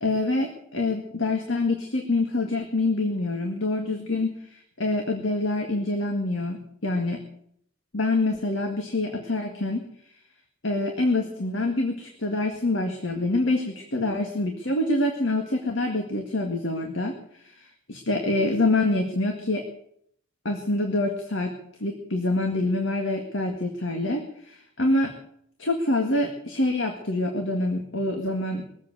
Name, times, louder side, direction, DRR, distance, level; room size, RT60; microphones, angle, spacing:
voice 1, 0.0-7.2 7.9-9.8 10.6-17.1 17.4-19.7 20.5-21.6 21.8-25.1 25.6-28.6, left 2 dB, 65° left, 3 dB, 1.9 m, -26 dB
21.0 x 8.3 x 8.1 m, 0.69 s
head